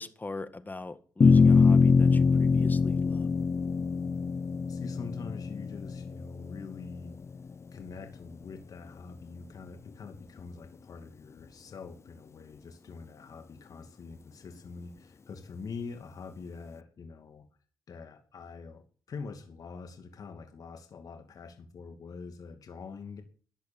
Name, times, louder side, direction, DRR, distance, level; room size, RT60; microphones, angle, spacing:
voice 1, 0.0-3.3, left 3 dB, 25° left, 1.8 m, -41 dB
sound 1, 1.2-7.7, left 5 dB, 40° left, 0.7 m, -24 dB
voice 2, 4.7-7.1 7.7-17.5 17.9-23.2, left 5 dB, 60° left, 2.5 m, -44 dB
14.5 x 11.0 x 8.8 m
cardioid pair, 60°, 7 cm